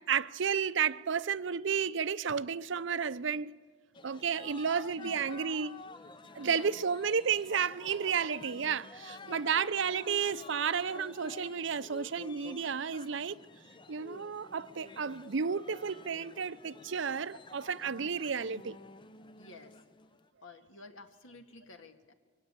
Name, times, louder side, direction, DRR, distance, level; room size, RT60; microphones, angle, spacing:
voice 1, 0.1-3.5 4.0-5.8 6.3-13.4 13.9-18.8, right 6 dB, 65° right, 0.6 m, -32 dB
sound 1, 3.9-20.3, left 3 dB, 25° left, 0.6 m, -51 dB
voice 2, 5.0-5.4 6.4-6.8 9.1-9.5 17.8-18.2 19.4-19.8 20.4-22.1, left 3 dB, 80° left, 1.8 m, -51 dB
23.0 x 17.0 x 8.8 m
head